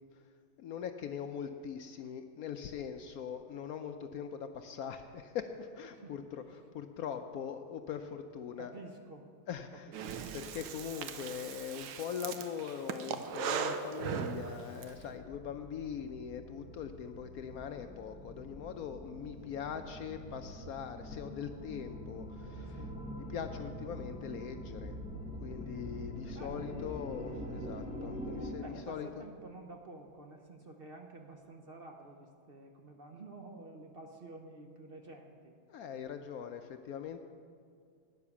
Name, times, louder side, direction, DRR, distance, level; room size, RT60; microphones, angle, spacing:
voice 1, 0.6-8.7 9.5-9.9 10.3-22.8 23.2-25.0 25.4-29.1 35.7-37.2, left 8 dB, 80° left, 7 dB, 0.8 m, -41 dB
voice 2, 8.6-9.3 9.7-10.4 22.7-23.0 26.3-26.9 28.6-35.5, right 2 dB, 55° right, 3 dB, 0.6 m, -50 dB
Breathing, 9.9-14.9, right 8 dB, 75° right, 1.4 m, -39 dB
sound 1, 14.9-28.5, equal, 5° right, 1.7 m, -45 dB
12.0 x 9.6 x 6.9 m, 2.2 s
omnidirectional pair, 2.1 m